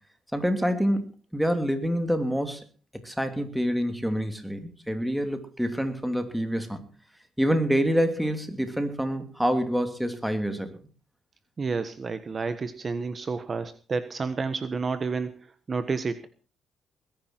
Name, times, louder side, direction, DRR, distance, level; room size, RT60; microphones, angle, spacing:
voice 1, 0.3-2.6 3.0-6.9 7.4-10.8, equal, 5° right, 8 dB, 2.9 m, -27 dB
voice 2, 11.6-16.3, right 4 dB, 35° right, 11 dB, 1.3 m, -30 dB
20.5 x 10.5 x 4.6 m, 0.37 s
cardioid pair, 90°, 0 cm